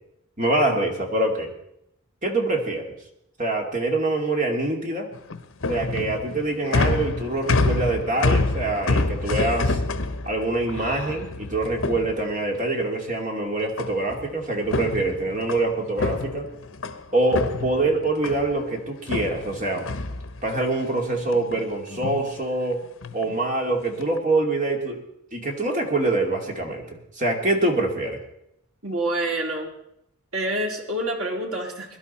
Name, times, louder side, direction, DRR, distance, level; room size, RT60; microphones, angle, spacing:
voice 1, 0.4-1.5 2.2-2.9 3.4-5.1 5.7-9.8 10.2-16.5 17.1-19.9 20.4-22.8 23.1-25.0 25.3-28.2, right 2 dB, 35° right, 2 dB, 2.4 m, -25 dB
sound 1, 5.1-12.7 13.8-14.3 14.6-17.0 17.3-18.6 19.1-20.7 21.1-21.6 21.9-22.3 23.0-23.4 23.9-24.2, left 3 dB, 70° left, 1.0 m, -27 dB
voice 2, 28.8-29.7 30.3-32.0, right 1 dB, 75° right, 0 dB, 3.4 m, -27 dB
22.0 x 11.5 x 4.3 m, 0.78 s
head